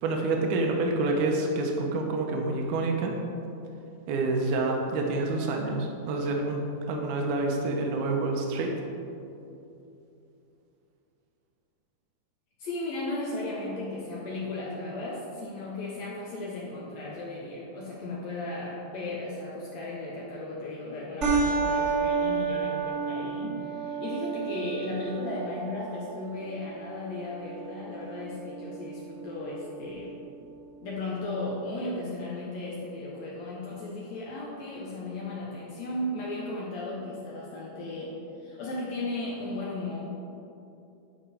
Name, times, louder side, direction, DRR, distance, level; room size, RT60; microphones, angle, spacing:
voice 1, 0.0-3.2 4.1-8.8, right 2 dB, 85° right, 2 dB, 1.8 m, -28 dB
voice 2, 12.6-30.1 30.8-40.0, left 2 dB, 80° left, -5 dB, 1.5 m, -35 dB
sound 1, 21.2-30.2, right 5 dB, 65° right, 0.7 m, -32 dB
10.5 x 5.2 x 4.3 m, 2.7 s
omnidirectional pair, 4.5 m